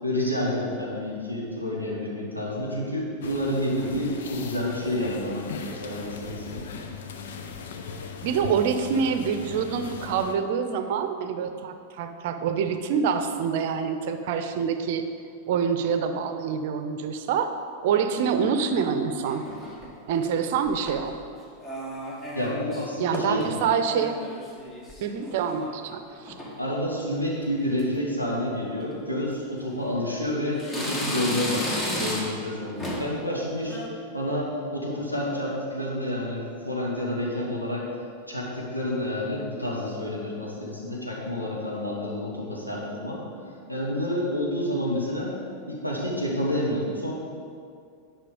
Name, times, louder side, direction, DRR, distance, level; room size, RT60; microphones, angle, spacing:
voice 1, 0.0-6.6 22.4-23.7 26.6-33.8 34.1-37.9 38.3-43.2 43.7-45.4 45.7-47.1, left 1 dB, 85° left, -4 dB, 1.9 m, -29 dB
sound 1, 3.2-10.3, left 5 dB, 60° left, 0.7 m, -39 dB
voice 2, 8.2-15.0 15.5-17.5 17.8-19.5 20.1-21.1 23.0-24.2 25.0-26.3, right 6 dB, 50° right, 8 dB, 0.7 m, -26 dB
sound 2, 19.2-20.0 20.7-21.2 21.6-22.9 23.1-23.5 23.8-25.8 26.1-26.6 27.1-27.4 27.8-27.9 28.8-29.0 29.6-30.2 30.6-32.5 32.8-33.2 33.6-33.9, left 1 dB, 20° left, 1.7 m, -34 dB
9.8 x 5.7 x 5.2 m, 2.3 s
figure-of-eight pair, 90°, 0 cm